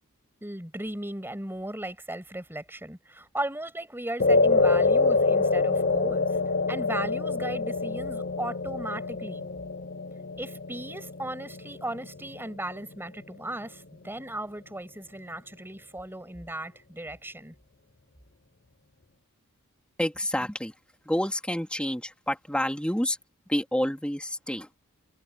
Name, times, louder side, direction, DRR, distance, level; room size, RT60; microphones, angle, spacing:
voice 1, 0.4-6.3 6.7-9.5 10.4-17.5, right 1 dB, 10° right, 6.5 m, -36 dB
sound 1, 4.2-12.7, left 3 dB, 45° left, 0.9 m, -26 dB
voice 2, 20.0-20.7 21.0-23.2 23.5-24.7, left 1 dB, 5° left, 2.7 m, -28 dB
head